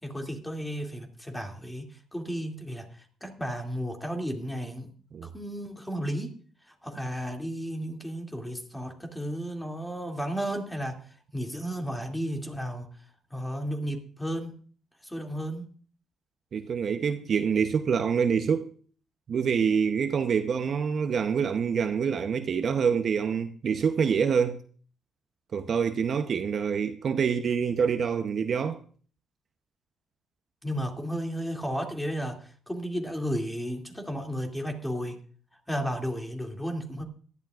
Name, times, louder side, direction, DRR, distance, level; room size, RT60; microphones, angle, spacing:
voice 1, 0.0-2.9 3.2-4.9 5.2-6.3 6.7-11.0 11.3-12.9 13.3-14.6 15.0-15.7 30.6-35.2 35.7-37.0, equal, 10° left, 2.6 m, -33 dB
voice 2, 16.5-18.7 19.3-24.6 25.5-28.8, right 6 dB, 55° right, 0.8 m, -26 dB
18.0 x 12.0 x 2.5 m
cardioid pair, 90°, 0 cm